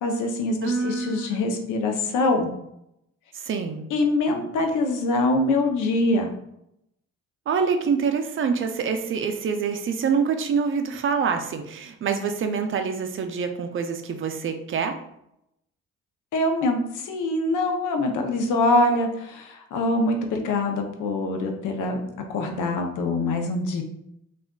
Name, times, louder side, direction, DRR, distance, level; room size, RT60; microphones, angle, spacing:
voice 1, 0.0-2.5 3.9-6.3 16.3-22.0 22.3-23.8, left 2 dB, 85° left, 4 dB, 0.6 m, -24 dB
voice 2, 0.6-1.4 3.3-3.9 7.5-15.0, right 6 dB, 45° right, 6 dB, 0.4 m, -26 dB
3.5 x 2.4 x 2.2 m, 0.78 s
cardioid pair, 90°, 30 cm